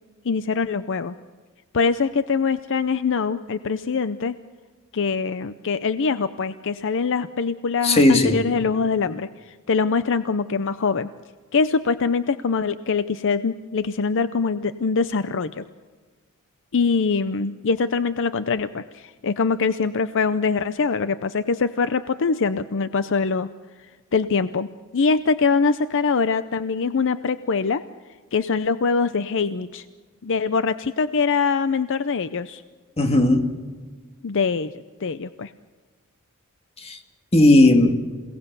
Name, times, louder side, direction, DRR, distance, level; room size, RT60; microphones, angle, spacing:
voice 1, 0.2-1.1 1.7-4.4 4.9-11.1 11.5-15.6 16.7-23.5 24.1-24.7 24.9-27.8 28.3-29.9 30.2-32.6 34.2-35.5, left 5 dB, 60° left, 12 dB, 0.6 m, -23 dB
voice 2, 7.8-8.4 33.0-33.5 36.8-37.0 37.3-38.0, left 2 dB, 30° left, 4 dB, 2.1 m, -16 dB
27.5 x 18.0 x 6.8 m, 1.4 s
head